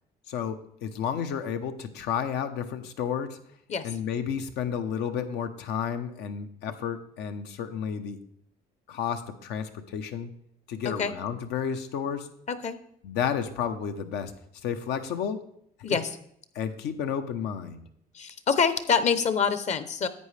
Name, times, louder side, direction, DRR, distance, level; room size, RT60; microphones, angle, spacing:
voice 1, 0.3-3.4 3.8-8.2 8.9-10.3 10.7-12.3 13.0-14.3 14.6-15.4 16.5-17.9, left 8 dB, 85° left, 8 dB, 0.9 m, -31 dB
voice 2, 18.1-20.1, left 6 dB, 45° left, 12 dB, 0.7 m, -26 dB
10.5 x 8.3 x 3.3 m, 0.71 s
cardioid pair, 110°, 17 cm